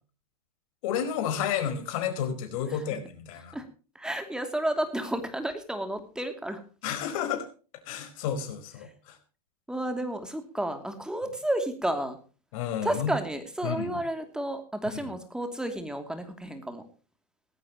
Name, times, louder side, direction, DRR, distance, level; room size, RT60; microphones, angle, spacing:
voice 1, 0.8-3.6 6.8-7.5 7.9-9.2 12.5-13.1 13.6-14.0, left 8 dB, 55° left, 8 dB, 4.8 m, -31 dB
voice 2, 3.9-6.6 9.7-12.2 12.8-16.8, right 1 dB, 5° right, 7 dB, 2.8 m, -31 dB
18.5 x 16.0 x 3.0 m, 0.36 s
hypercardioid pair, 115°, 20 cm